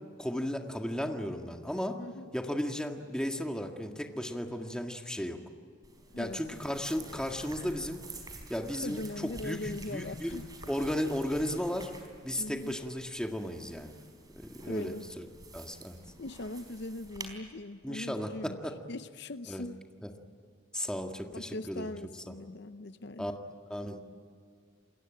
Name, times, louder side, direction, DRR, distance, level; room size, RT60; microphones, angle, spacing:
voice 1, 0.2-2.0 2.3-5.4 6.2-8.0 8.5-10.4 10.7-11.9 12.2-14.0 14.4-15.3 15.5-16.0 17.8-18.8 19.5-19.6 20.0-20.1 20.7-21.9 22.3-22.4 23.2-23.3 23.7-24.0, equal, 5° left, 1.8 m, -35 dB
voice 2, 2.0-2.3 6.1-6.4 8.8-10.4 12.3-12.8 14.7-15.0 16.2-18.6 18.9-19.7 21.3-23.3, left 2 dB, 60° left, 0.7 m, -40 dB
sound 1, 5.8-17.3, right 2 dB, 20° right, 4.3 m, -50 dB
28.0 x 22.0 x 9.0 m
head